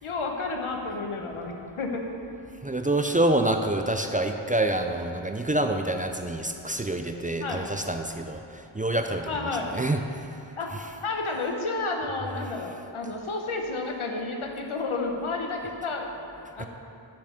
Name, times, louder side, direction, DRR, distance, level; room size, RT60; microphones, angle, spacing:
voice 1, 0.0-2.0 7.4-7.7 9.3-9.7 10.6-16.1 16.6-16.7, left 3 dB, 90° left, 2 dB, 1.1 m, -31 dB
voice 2, 2.6-8.4 8.7-10.2 16.6-16.7, right 1 dB, 20° right, 5 dB, 0.4 m, -27 dB
10.5 x 5.7 x 5.0 m, 2.7 s
wide cardioid pair, 85°, 48 cm